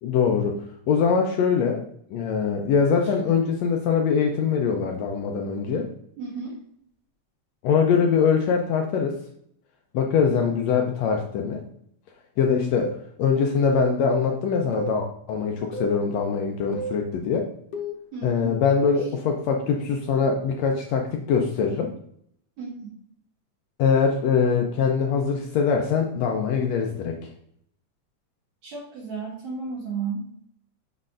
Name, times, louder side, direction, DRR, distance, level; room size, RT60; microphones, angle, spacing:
voice 1, 0.0-1.8 2.1-5.9 7.6-9.2 9.9-11.6 12.4-17.5 18.2-21.9 23.8-27.3, left 6 dB, 85° left, 2 dB, 1.5 m, -23 dB
voice 2, 6.2-6.6 18.1-18.5 22.6-22.8 28.6-30.3, right 4 dB, 65° right, -4 dB, 2.1 m, -33 dB
sound 1, 12.7-13.0 13.7-14.0 14.7-15.0 15.7-16.0 16.7-17.0 17.7-18.0, right 2 dB, 65° left, 1.6 m, -31 dB
6.5 x 6.1 x 2.5 m, 0.68 s
omnidirectional pair, 3.8 m